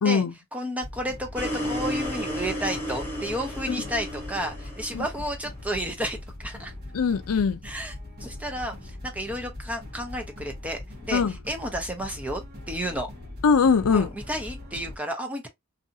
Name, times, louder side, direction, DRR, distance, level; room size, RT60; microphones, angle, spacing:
voice 1, 0.0-0.3 4.9-5.1 6.9-7.6 11.1-11.4 13.4-14.1, left 5 dB, 85° left, 0.5 m, -21 dB
voice 2, 0.5-6.7 7.6-7.9 8.2-13.1 13.9-15.5, equal, 5° right, 0.6 m, -32 dB
sound 1, 0.8-15.0, left 1 dB, 50° right, 1.3 m, -41 dB
sound 2, 1.4-5.5, equal, 10° left, 1.0 m, -33 dB
2.7 x 2.5 x 2.6 m
head